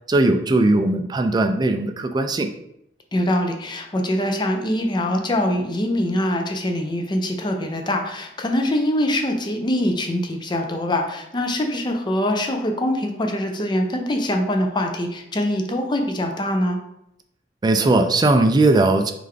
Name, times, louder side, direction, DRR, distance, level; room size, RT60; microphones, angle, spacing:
voice 1, 0.1-2.5 17.6-19.1, right 2 dB, 25° right, 6 dB, 0.3 m, -18 dB
voice 2, 3.1-16.8, left 1 dB, 25° left, 4 dB, 0.5 m, -23 dB
3.5 x 3.3 x 3.6 m, 0.77 s
head